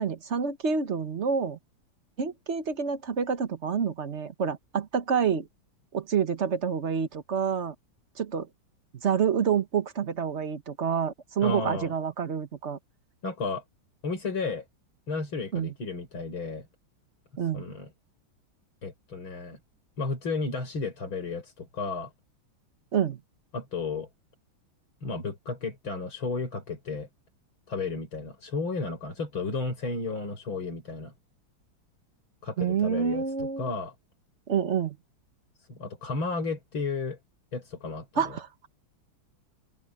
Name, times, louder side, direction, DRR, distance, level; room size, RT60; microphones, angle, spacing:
voice 1, 0.0-1.6 2.2-5.5 5.9-7.7 8.2-8.5 9.0-12.8 15.5-15.7 17.4-17.6 22.9-23.2 32.6-33.7 34.5-35.0 38.2-38.7, right 7 dB, 40° right, 1.3 m, -28 dB
voice 2, 11.4-11.9 13.2-13.6 14.0-14.6 15.1-16.7 17.5-17.9 18.8-19.6 20.0-22.1 23.5-24.1 25.0-27.1 27.7-31.1 32.4-33.9 35.6-37.2 37.5-38.3, left 3 dB, 80° left, 6.2 m, -33 dB
open air
omnidirectional pair, 2.2 m